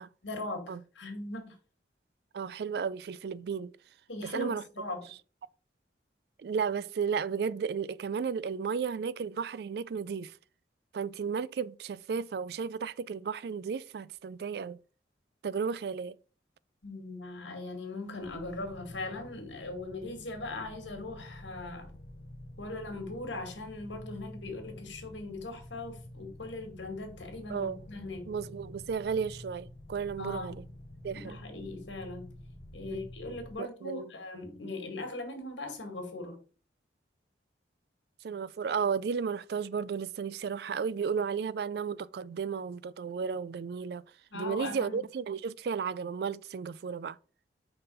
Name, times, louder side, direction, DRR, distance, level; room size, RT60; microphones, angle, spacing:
voice 1, 0.2-1.5 4.1-5.0 16.8-21.9 22.6-28.3 30.2-30.5 31.1-32.3 32.7-36.4 44.3-45.0, left 2 dB, 85° left, 2.0 m, -40 dB
voice 2, 2.3-3.7 4.2-4.6 6.4-10.4 10.9-14.8 15.4-16.2 27.5-27.8 28.3-30.6 31.0-31.4 32.8-33.1 33.6-34.1 38.2-44.0 44.3-47.2, right 6 dB, 60° right, 0.3 m, -34 dB
sound 1, 18.2-33.5, left 1 dB, 40° left, 1.4 m, -49 dB
5.5 x 4.1 x 5.3 m
head